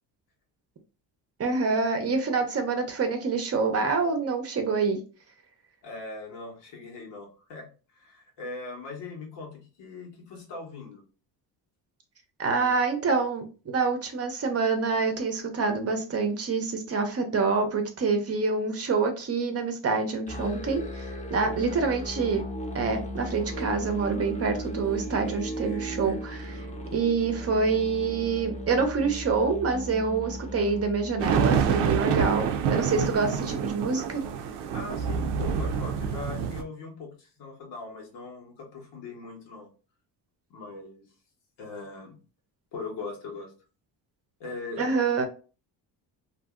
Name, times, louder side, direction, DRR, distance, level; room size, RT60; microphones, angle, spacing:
voice 1, 1.4-5.0 12.4-22.4 22.7-26.6 26.9-34.2 44.8-45.3, right 4 dB, 35° right, 5 dB, 0.7 m, -26 dB
voice 2, 5.8-11.0 12.5-12.7 34.7-39.7 40.5-41.0 41.6-42.2 42.7-43.5 44.4-45.0, left 3 dB, 85° left, 0 dB, 1.3 m, -40 dB
Musical instrument, 20.3-31.9, equal, 20° left, 0.8 m, -36 dB
sound 1, 31.2-36.6, right 6 dB, 85° right, 0.6 m, -27 dB
2.7 x 2.7 x 2.4 m, 0.35 s
cardioid pair, 100°, 41 cm